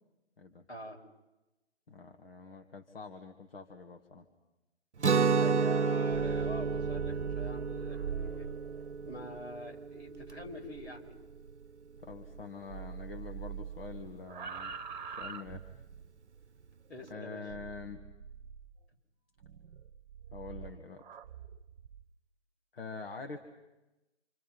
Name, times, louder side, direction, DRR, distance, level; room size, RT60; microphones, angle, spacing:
voice 1, 0.7-1.0 5.4-8.5 9.0-11.2 16.9-17.4, equal, 75° left, 2 dB, 5.6 m, -45 dB
voice 2, 1.9-4.3 12.0-14.7 15.2-15.8 17.1-18.0 20.3-21.0 22.7-23.4, left 4 dB, 55° left, 5 dB, 2.0 m, -45 dB
Guitar, 5.0-10.8, right 5 dB, 85° right, 0.8 m, -31 dB
sound 1, 6.0-12.4 12.7-16.1 17.5-18.7 19.4-22.0, right 7 dB, 40° right, 1.3 m, -44 dB
27.5 x 27.5 x 5.8 m, 1.0 s
figure-of-eight pair, 140°, 34 cm